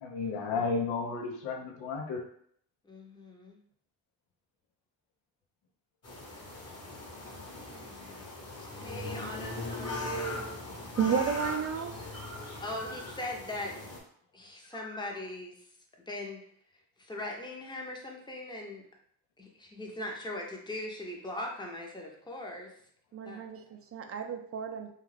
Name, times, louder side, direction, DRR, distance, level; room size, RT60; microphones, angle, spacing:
voice 1, 0.0-2.2, left 4 dB, 80° left, 1 dB, 0.7 m, -33 dB
voice 2, 2.8-3.6 7.7-8.3 8.6-10.5 12.6-13.7 14.3-15.7 16.1-16.4 17.0-18.8 19.4-22.7 23.2-23.4, left 1 dB, 10° left, 0 dB, 0.7 m, -40 dB
sound 1, 6.0-14.0, left 2 dB, 30° left, 1.0 m, -40 dB
voice 3, 11.0-11.9 23.1-24.9, right 7 dB, 30° right, 5 dB, 0.5 m, -32 dB
sound 2, 11.3-13.3 14.6-15.2, right 1 dB, 75° right, 0.8 m, -48 dB
2.4 x 2.4 x 3.2 m, 0.64 s
supercardioid pair, 60°, 49 cm